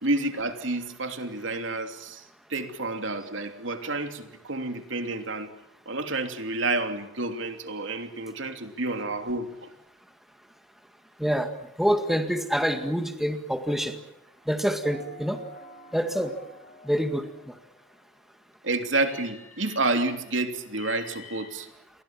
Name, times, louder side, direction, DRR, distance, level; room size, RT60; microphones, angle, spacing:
voice 1, 0.0-2.2 2.5-5.5 5.9-9.7 18.6-21.7, right 2 dB, 90° right, 6 dB, 3.1 m, -29 dB
voice 2, 11.2-14.0 14.5-15.4 15.9-16.4 16.8-17.6, equal, ahead, 6 dB, 2.0 m, -27 dB
sound 1, 13.8-14.3 14.8-17.9 19.1-21.5, left 3 dB, 40° left, 6.5 m, -49 dB
30.0 x 22.5 x 7.6 m, 0.81 s
head